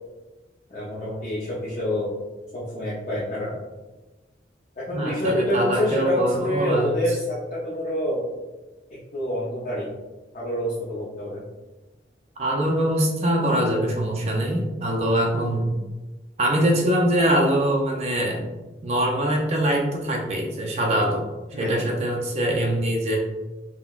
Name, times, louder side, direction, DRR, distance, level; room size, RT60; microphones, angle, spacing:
voice 1, 0.7-2.1 2.5-3.5 4.8-8.2 9.1-9.9 10.3-11.4 21.5-21.9, equal, 45° left, -7 dB, 0.6 m, -27 dB
voice 2, 4.9-6.9 12.4-15.7 16.4-18.5 18.8-21.2 21.6-23.2, right 1 dB, 35° right, -1 dB, 0.4 m, -23 dB
3.9 x 2.1 x 2.3 m, 1.1 s
head